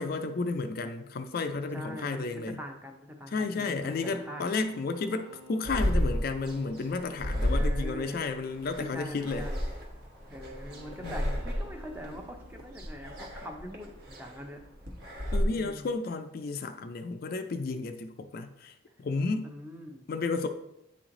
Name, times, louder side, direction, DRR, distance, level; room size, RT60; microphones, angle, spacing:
voice 1, 0.0-2.6 3.3-9.5 11.0-11.2 15.3-18.7 19.0-19.5 20.1-20.5, left 3 dB, 45° left, 8 dB, 0.3 m, -32 dB
voice 2, 1.7-4.5 7.5-8.3 8.8-9.6 10.3-14.6 15.5-15.9 19.4-20.1, left 1 dB, 10° right, 3 dB, 0.6 m, -43 dB
sound 1, 3.8-8.2 10.6-13.8, right 1 dB, 25° right, 1.1 m, -54 dB
sound 2, 5.6-15.4, equal, 50° right, 1.2 m, -32 dB
9.1 x 3.1 x 3.7 m, 0.86 s
head